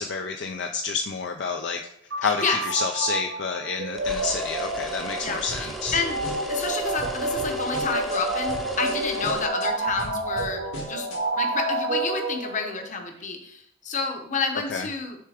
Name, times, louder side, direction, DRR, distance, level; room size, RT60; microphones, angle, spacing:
voice 1, 0.0-1.8 2.2-6.0 14.7-14.9, left 5 dB, 60° left, 4 dB, 0.4 m, -29 dB
sound 1, 2.1-12.8, right 2 dB, 70° right, 0.8 m, -29 dB
voice 2, 2.2-2.6 5.2-5.4 5.9-6.2 6.5-10.6 10.9-11.1 11.3-15.2, left 4 dB, 40° left, 4 dB, 0.9 m, -29 dB
sound 2, 4.0-9.5, right 1 dB, ahead, 0.6 m, -36 dB
sound 3, 5.5-6.7 7.0-8.2 8.5-8.9 9.2-11.2, left 1 dB, 90° left, 2.3 m, -38 dB
6.7 x 3.3 x 4.9 m, 0.72 s
head